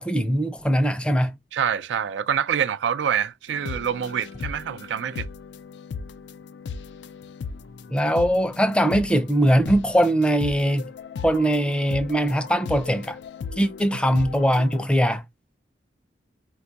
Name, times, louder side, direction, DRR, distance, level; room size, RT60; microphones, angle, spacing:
voice 1, 0.0-1.3 7.9-10.8 11.2-13.2 13.6-15.2, equal, 5° left, 0.4 m, -21 dB
voice 2, 1.5-5.3, right 8 dB, 85° right, 0.3 m, -26 dB
sound 1, 3.5-14.8, left 5 dB, 75° left, 0.4 m, -37 dB
4.3 x 2.3 x 3.9 m
head